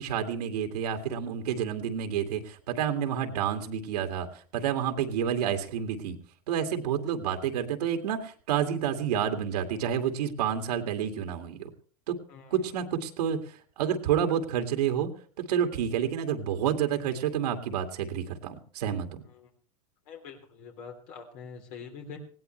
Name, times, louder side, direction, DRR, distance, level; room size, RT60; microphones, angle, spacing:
voice 1, 0.0-4.3 4.5-6.2 6.5-11.7 12.1-12.2 12.5-13.4 13.8-15.1 15.5-19.2, right 8 dB, 85° right, 5 dB, 2.3 m, -29 dB
voice 2, 20.1-22.2, left 6 dB, 60° left, 3 dB, 3.5 m, -44 dB
19.5 x 17.0 x 3.3 m, 0.43 s
supercardioid pair, 115°, 20 cm